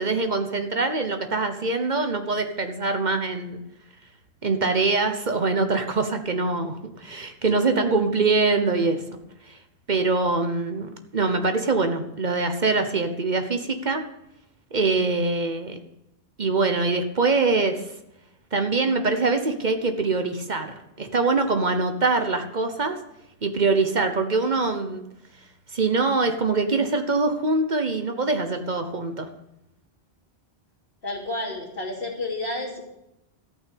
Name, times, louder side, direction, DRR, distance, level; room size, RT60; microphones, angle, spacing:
voice 1, 0.0-3.6 4.4-9.0 9.9-14.0 14.7-15.8 16.4-17.8 18.5-23.0 23.4-25.0 25.7-29.3, right 3 dB, 50° right, 7 dB, 1.1 m, -24 dB
voice 2, 31.0-32.8, left 2 dB, 65° left, -3 dB, 3.1 m, -30 dB
13.5 x 6.1 x 8.5 m, 0.85 s
omnidirectional pair, 1.0 m